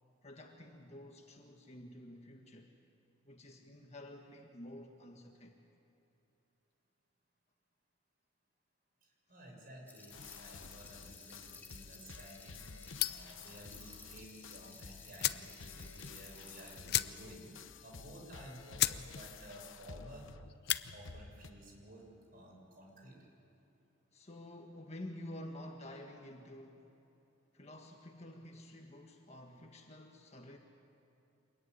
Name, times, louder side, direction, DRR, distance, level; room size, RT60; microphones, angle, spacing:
voice 1, 0.2-2.7 3.2-5.6 24.1-26.9 27.5-30.6, left 1 dB, 35° left, 2 dB, 1.6 m, -50 dB
voice 2, 9.3-20.3 20.9-22.1 22.3-23.2, right 1 dB, 45° right, 0 dB, 6.7 m, -54 dB
sound 1, 9.9-16.8, left 3 dB, 10° left, 1.9 m, -56 dB
sound 2, 10.1-21.5, left 5 dB, 80° left, 1.0 m, -52 dB
sound 3, 13.0-13.4 14.7-14.8 15.2-15.5 15.9-16.0 16.2-16.4 16.8-17.4 17.8-17.9 18.4-18.5 18.8-19.0 19.4-19.7 20.5-20.8, left 13 dB, 55° left, 0.7 m, -34 dB
25.5 x 22.0 x 9.8 m, 2.8 s
head